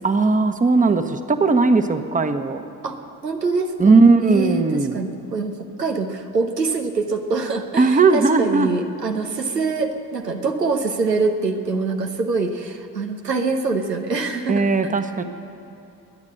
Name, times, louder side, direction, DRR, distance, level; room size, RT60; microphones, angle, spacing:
voice 1, 0.0-2.6 3.8-5.0 7.8-8.7 14.5-15.2, right 3 dB, 15° right, 8 dB, 1.1 m, -17 dB
voice 2, 2.8-4.0 4.3-14.9, right 3 dB, 90° right, 5 dB, 0.8 m, -24 dB
21.5 x 9.6 x 6.5 m, 2.7 s
figure-of-eight pair, 50°, 47 cm